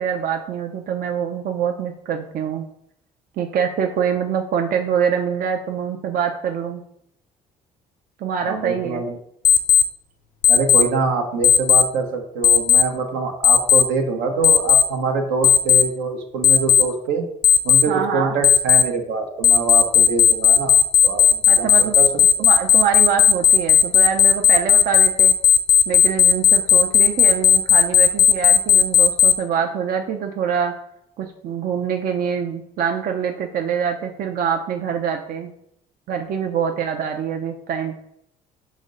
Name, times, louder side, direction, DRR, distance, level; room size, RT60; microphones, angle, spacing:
voice 1, 0.0-2.6 3.4-6.8 8.2-9.0 17.9-18.3 21.5-21.9 22.4-25.3 25.9-30.7 31.2-35.5 36.1-38.0, right 7 dB, 55° right, 4 dB, 0.5 m, -24 dB
voice 2, 8.4-9.2 10.5-17.2 17.6-20.8 21.0-22.1 22.4-22.5, right 4 dB, 80° right, 3 dB, 0.8 m, -24 dB
Alarm, 9.4-9.8 10.4-10.8 11.4-11.8 12.4-12.8 13.4-13.8 14.4-14.8 15.4-15.8 16.4-16.8 17.4-17.8 18.4-18.8 19.4-29.3, left 9 dB, 50° left, 0.4 m, -13 dB
5.0 x 2.1 x 3.8 m, 0.74 s
supercardioid pair, 70°, 18 cm